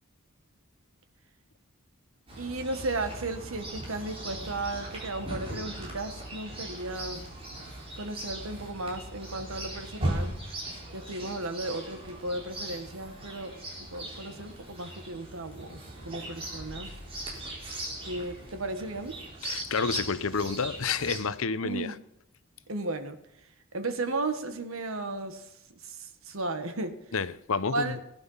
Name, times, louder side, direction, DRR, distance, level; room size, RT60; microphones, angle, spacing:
Chirp tweet, 2.3-21.2, right 1 dB, 25° right, 4.4 m, -39 dB
voice 1, 2.4-7.2 8.0-10.3 10.9-13.6 13.9-15.8 16.0-16.9 18.0-19.2 21.6-22.0 22.7-23.2 23.7-25.5 25.8-27.0 27.7-28.0, right 2 dB, 75° right, 1.7 m, -35 dB
voice 2, 19.4-21.9 27.1-28.0, left 5 dB, 75° left, 0.8 m, -29 dB
18.5 x 11.0 x 5.7 m
head